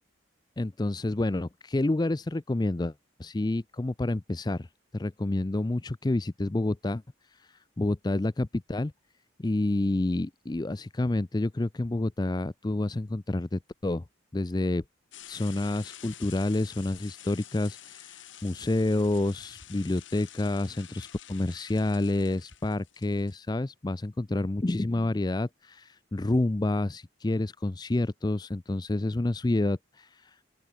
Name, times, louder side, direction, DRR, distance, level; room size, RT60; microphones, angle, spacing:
voice 1, 0.6-2.9 3.2-4.7 4.9-8.9 9.4-14.1 14.3-14.8 15.3-30.4, left 2 dB, 20° left, 0.4 m, -29 dB
sound 1, 15.1-23.4, left 11 dB, 75° left, 3.2 m, -49 dB
open air
head